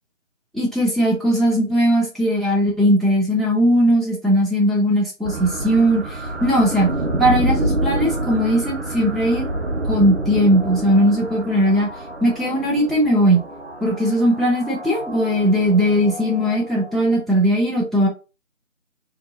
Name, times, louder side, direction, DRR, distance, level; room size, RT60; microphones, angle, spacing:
voice 1, 0.5-6.0 6.4-6.9 7.2-9.5 9.9-11.9 12.2-13.4 13.8-18.1, equal, ahead, -4 dB, 0.5 m, -18 dB
sound 1, 5.2-17.2, right 1 dB, 50° right, 0.6 m, -28 dB
2.7 x 2.2 x 2.6 m, 0.30 s
figure-of-eight pair, 165°, 41 cm